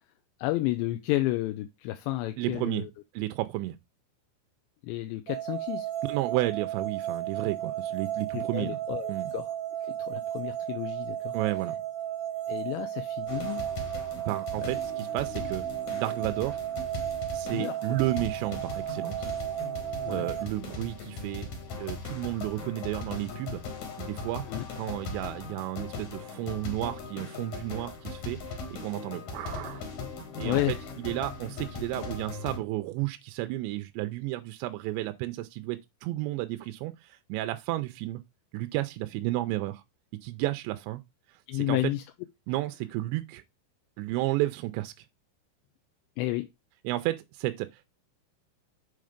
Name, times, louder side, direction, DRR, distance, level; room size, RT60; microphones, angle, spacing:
voice 1, 0.4-2.9 4.8-5.9 8.3-9.5 9.8-11.4 12.5-13.6 14.6-14.7 17.5-18.0 20.0-20.3 24.5-24.6 30.4-30.9 41.5-42.0 46.2-46.5, left 16 dB, 85° left, 2.8 m, -31 dB
voice 2, 2.4-2.8 3.1-3.8 6.1-8.8 9.1-9.3 11.3-11.8 14.3-15.7 15.9-16.6 17.3-19.3 20.1-21.5 21.8-23.6 24.0-24.4 24.8-29.8 30.4-30.8 31.0-38.2 38.5-39.8 40.2-41.0 41.5-41.8 42.5-43.4 44.0-44.9 46.8-47.9, right 17 dB, 85° right, 2.8 m, -32 dB
sound 1, 5.3-20.5, right 11 dB, 60° right, 2.5 m, -34 dB
sound 2, 13.3-32.6, left 3 dB, 55° left, 2.5 m, -39 dB
7.7 x 3.6 x 5.0 m
omnidirectional pair, 5.1 m